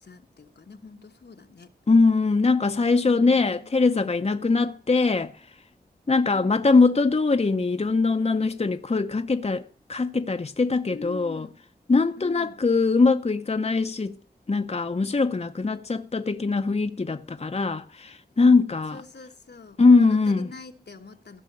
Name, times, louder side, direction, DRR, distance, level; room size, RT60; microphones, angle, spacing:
voice 1, 0.0-1.7 3.0-3.7 6.3-6.6 10.9-11.6 12.2-12.6 18.9-21.4, left 4 dB, 80° left, 1.3 m, -44 dB
voice 2, 1.9-5.3 6.1-9.6 9.9-11.5 11.9-14.2 14.5-19.0 19.8-20.5, left 3 dB, 40° left, 0.7 m, -22 dB
15.5 x 5.7 x 8.6 m
wide cardioid pair, 50°, 17 cm